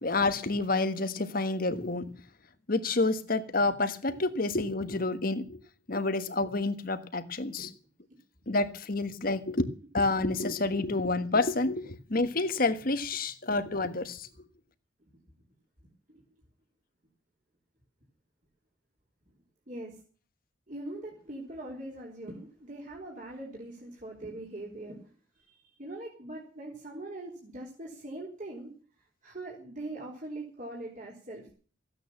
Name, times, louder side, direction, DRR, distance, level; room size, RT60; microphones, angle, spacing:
voice 1, 0.0-2.1 2.7-5.6 5.9-7.7 8.5-9.7 9.9-14.3, left 2 dB, 50° left, 1.4 m, -29 dB
voice 2, 19.7-20.0 20.7-25.1 25.5-28.7 29.2-31.5, right 1 dB, 40° right, 3.9 m, -42 dB
15.5 x 9.2 x 7.2 m
head